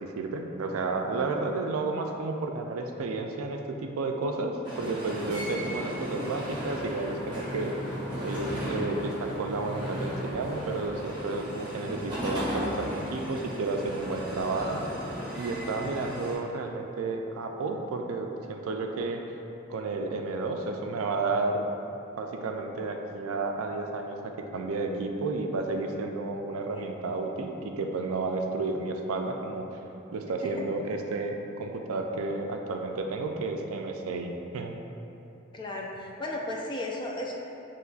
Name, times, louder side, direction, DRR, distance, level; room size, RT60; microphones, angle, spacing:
voice 1, 0.0-7.8 8.2-14.8 15.4-19.2 19.7-21.6 22.2-29.8 30.1-34.7, right 3 dB, 80° right, 3 dB, 0.4 m, -32 dB
sound 1, 4.6-16.3, equal, 20° right, 0.9 m, -35 dB
voice 2, 35.5-37.3, left 1 dB, 20° left, -1 dB, 0.3 m, -34 dB
5.8 x 3.0 x 2.3 m, 2.9 s
head